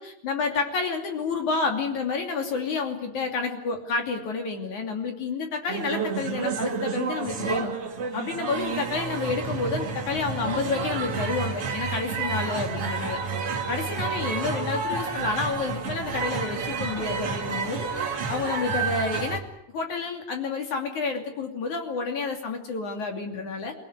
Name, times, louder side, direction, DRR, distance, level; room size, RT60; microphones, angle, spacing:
voice 1, 0.0-7.7 8.1-13.2 13.7-17.9 18.3-19.4 19.7-23.7, left 4 dB, 45° left, 4 dB, 3.5 m, -29 dB
sound 1, 5.7-19.4, right 5 dB, 40° right, 2.4 m, -30 dB
26.5 x 17.5 x 9.6 m, 0.78 s
omnidirectional pair, 5.5 m